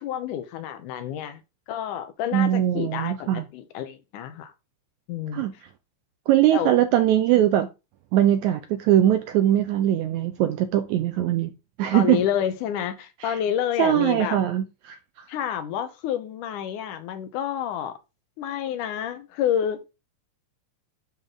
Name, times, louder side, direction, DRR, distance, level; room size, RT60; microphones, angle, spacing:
voice 1, 0.0-1.4 1.7-4.5 5.1-5.4 6.5-6.7 11.9-14.4 15.3-17.9 18.4-19.8, left 9 dB, 75° left, 2.3 m, -29 dB
voice 2, 2.3-3.5 5.3-5.5 6.3-7.7 8.1-11.5 11.8-12.2 13.2-13.4 13.8-15.0, right 12 dB, 80° right, 1.7 m, -21 dB
10.0 x 4.2 x 3.6 m
omnidirectional pair, 3.8 m